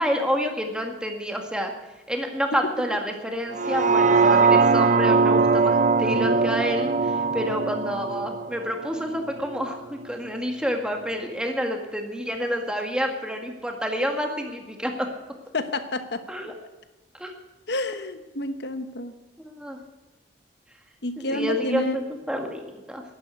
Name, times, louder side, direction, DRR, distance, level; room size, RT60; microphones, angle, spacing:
voice 1, 0.0-1.7 2.1-15.1 16.3-16.5 17.2-17.3 19.4-19.8 21.2-23.0, equal, 5° right, 3 dB, 1.8 m, -28 dB
sound 1, 3.5-9.7 10.1-10.2, right 4 dB, 45° right, 0.7 m, -21 dB
voice 2, 15.5-16.2 17.7-19.1 21.0-22.0, left 2 dB, 65° left, 10 dB, 1.1 m, -29 dB
11.0 x 11.0 x 8.4 m, 1.2 s
head